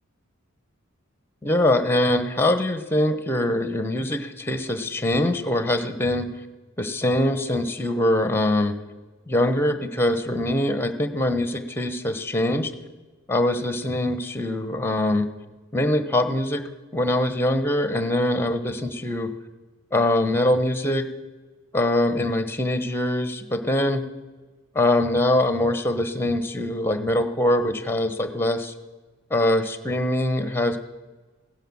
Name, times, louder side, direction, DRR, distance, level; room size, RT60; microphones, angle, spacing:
voice 1, 1.4-6.3 6.8-8.8 9.3-12.7 13.3-15.3 15.7-16.7 16.9-19.3 19.9-21.1 21.7-24.1 24.7-28.7 29.3-30.8, left 1 dB, 10° left, 10 dB, 0.9 m, -23 dB
16.0 x 10.0 x 7.2 m, 1.3 s
head